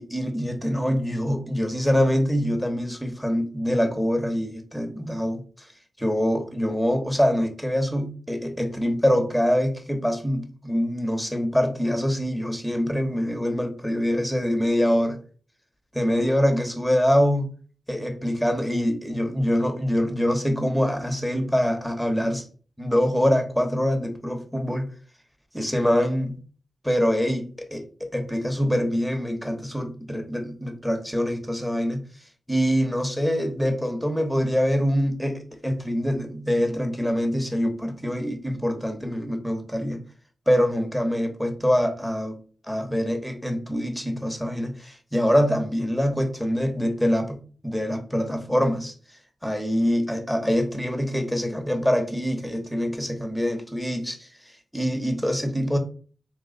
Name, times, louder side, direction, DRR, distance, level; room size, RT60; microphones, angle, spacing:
voice 1, 0.0-5.7 6.0-15.2 15.9-17.5 17.9-22.4 22.8-24.9 25.5-26.4 26.8-32.0 32.5-40.0 40.5-42.4 42.7-48.9 49.4-54.3 54.7-55.8, equal, ahead, 5 dB, 1.0 m, -24 dB
3.3 x 3.1 x 3.9 m, 0.39 s
cardioid pair, 65°, 0 cm